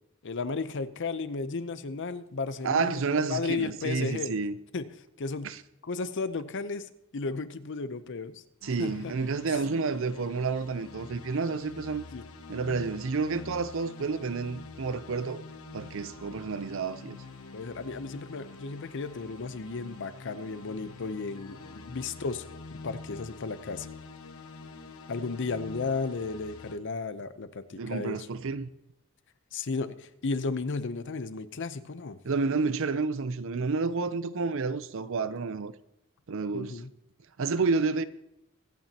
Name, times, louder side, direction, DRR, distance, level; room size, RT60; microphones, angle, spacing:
voice 1, 0.2-4.3 4.7-4.9 5.2-5.5 5.8-8.4 8.8-9.1 12.1-12.2 17.5-23.9 25.1-28.2 29.5-32.2 36.5-36.9, left 4 dB, 60° left, 0.7 m, -34 dB
voice 2, 2.6-4.6 5.4-5.6 8.6-12.0 12.5-15.4 15.7-17.2 27.7-28.7 32.2-35.7 36.3-36.8 37.4-38.0, right 4 dB, 65° right, 0.6 m, -30 dB
sound 1, 8.6-26.8, left 3 dB, 85° left, 1.1 m, -46 dB
24.0 x 9.0 x 2.9 m
head